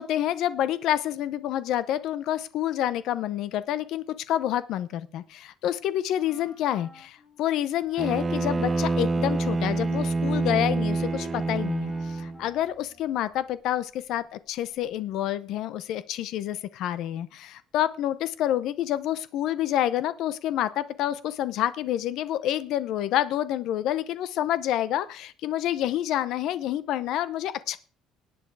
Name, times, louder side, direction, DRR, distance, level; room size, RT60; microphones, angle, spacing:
voice 1, 0.0-27.8, left 12 dB, 65° left, 16 dB, 0.7 m, -28 dB
Wind instrument woodwind instrument, 6.2-13.4, left 6 dB, 35° left, 4.9 m, -50 dB
Bowed string instrument, 8.0-12.4, right 3 dB, 20° right, 0.8 m, -27 dB
18.0 x 8.7 x 4.7 m, 0.41 s
cardioid pair, 145°, 0 cm